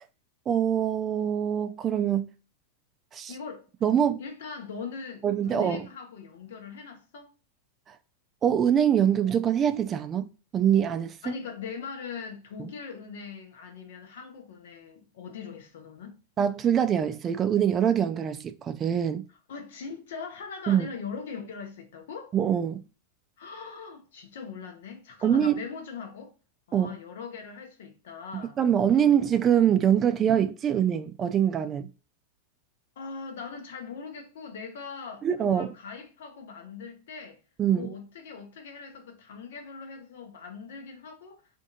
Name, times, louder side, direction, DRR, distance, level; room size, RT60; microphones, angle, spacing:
voice 1, 0.5-2.3 3.1-3.3 3.8-4.2 5.2-5.8 8.4-10.3 10.5-11.3 12.6-12.7 16.4-19.2 20.7-20.9 22.3-22.8 25.2-25.6 26.7-26.9 28.3-31.9 35.2-35.7 37.6-37.9, right 9 dB, 25° right, 0.3 m, -24 dB
voice 2, 3.3-3.7 4.2-7.3 11.2-16.1 19.5-22.3 23.4-26.3 26.7-28.6 29.0-29.1 33.0-37.4 37.7-41.4, left 5 dB, 80° left, 0.8 m, -41 dB
2.7 x 2.6 x 2.2 m
supercardioid pair, 130°, 0 cm